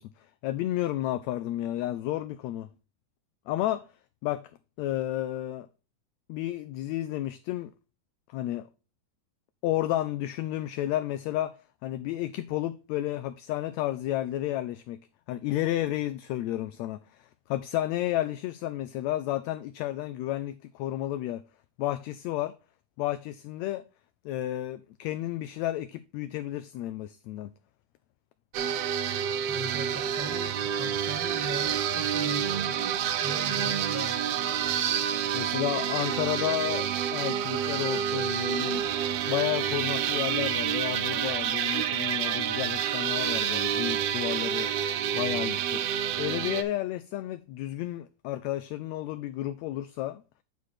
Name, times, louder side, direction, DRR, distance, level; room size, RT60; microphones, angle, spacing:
voice 1, 0.0-2.7 3.5-3.8 4.2-4.4 4.8-5.7 6.3-7.7 8.3-8.7 9.6-11.5 11.8-15.0 15.3-21.4 21.8-22.5 23.0-23.8 24.2-27.5 35.3-38.8 39.3-44.7 45.1-45.8 46.2-50.2, left 14 dB, 80° left, 1.6 m, -32 dB
sound 1, 28.5-46.6, right 9 dB, 75° right, 1.4 m, -28 dB
voice 2, 29.5-34.3, right 1 dB, 5° right, 0.9 m, -40 dB
9.5 x 4.8 x 4.1 m
omnidirectional pair, 3.6 m